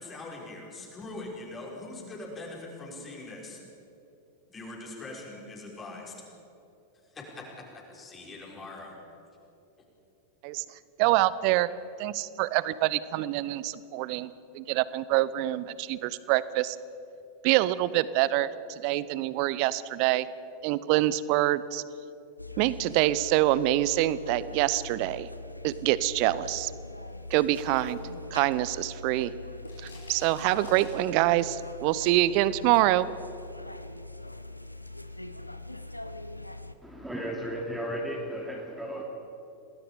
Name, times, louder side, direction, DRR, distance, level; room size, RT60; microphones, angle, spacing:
voice 1, 0.0-3.6 4.5-6.1 7.1-9.0, left 2 dB, 20° left, -2 dB, 5.8 m, -42 dB
voice 2, 11.0-11.7 12.0-16.8 17.4-20.3 20.6-21.8 22.6-25.3 25.6-26.7 27.3-28.0 28.3-29.3 29.8-33.1, right 15 dB, 45° right, 18 dB, 0.8 m, -26 dB
sound 1, 22.4-36.7, left 2 dB, 90° left, 0.9 m, -42 dB
sound 2, 27.1-28.8 29.0-31.5, left 3 dB, 75° left, 5.3 m, -50 dB
voice 3, 36.8-39.0, equal, 5° right, -1 dB, 2.8 m, -34 dB
28.0 x 19.5 x 5.2 m, 2.9 s
figure-of-eight pair, 90°, 0 cm